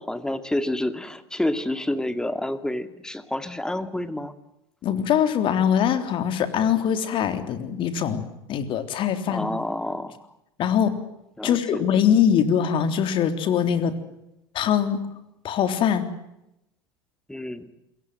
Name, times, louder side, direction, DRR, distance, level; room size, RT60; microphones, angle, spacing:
voice 1, 0.0-4.3 9.3-10.2 11.4-11.8 17.3-17.7, left 1 dB, 5° left, 11 dB, 2.3 m, -29 dB
voice 2, 4.8-8.2 8.5-9.5 10.6-10.9 11.4-14.0 14.5-15.0 15.4-16.1, left 8 dB, 40° left, 10 dB, 3.6 m, -22 dB
28.0 x 23.0 x 7.9 m, 0.87 s
figure-of-eight pair, 75°, 13 cm